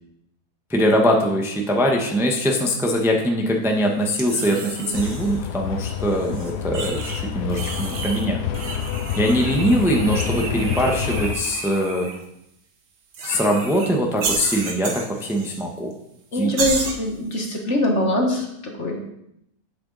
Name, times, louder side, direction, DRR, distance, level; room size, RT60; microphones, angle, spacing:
voice 1, 0.7-8.4 9.2-12.1 13.2-15.9 16.3-16.5, equal, ahead, 0 dB, 0.9 m, -22 dB
sound 1, 4.2-5.4 6.1-7.2 7.5-8.3 8.5-12.2 13.1-13.9 14.2-15.6 15.9-16.0 16.6-17.0, right 4 dB, 80° right, 1.9 m, -31 dB
voice 2, 4.6-5.0 16.3-19.0, left 1 dB, 45° left, 1 dB, 1.6 m, -23 dB
sound 2, 4.9-11.4, left 9 dB, 75° left, 1.2 m, -28 dB
9.2 x 8.0 x 4.0 m, 0.80 s
omnidirectional pair, 1.8 m